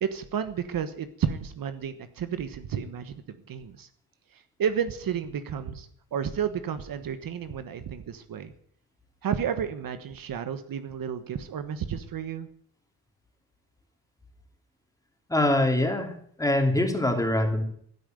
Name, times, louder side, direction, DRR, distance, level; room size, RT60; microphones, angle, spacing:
voice 1, 0.0-3.9 4.3-8.5 9.2-12.5, right 8 dB, 60° right, 10 dB, 1.3 m, -32 dB
voice 2, 15.3-16.1 16.4-17.6, left 1 dB, 10° left, 4 dB, 2.8 m, -23 dB
15.5 x 9.2 x 9.2 m, 0.63 s
wide cardioid pair, 155°, 39 cm